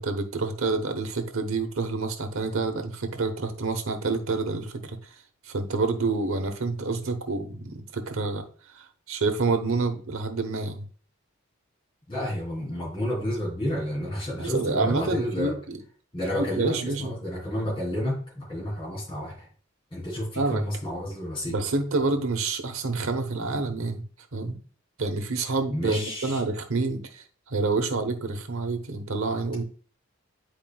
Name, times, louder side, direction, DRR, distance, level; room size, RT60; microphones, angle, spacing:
voice 1, 0.0-5.0 5.4-8.5 8.7-10.9 14.4-15.8 16.3-17.1 20.4-20.6 21.5-24.0 24.3-24.6 25.0-29.6, right 3 dB, 80° right, 7 dB, 1.0 m, -28 dB
voice 2, 12.1-15.5 16.1-19.5 19.9-21.6 25.7-26.4, equal, 25° left, -7 dB, 3.4 m, -30 dB
9.2 x 4.8 x 2.3 m, 0.43 s
head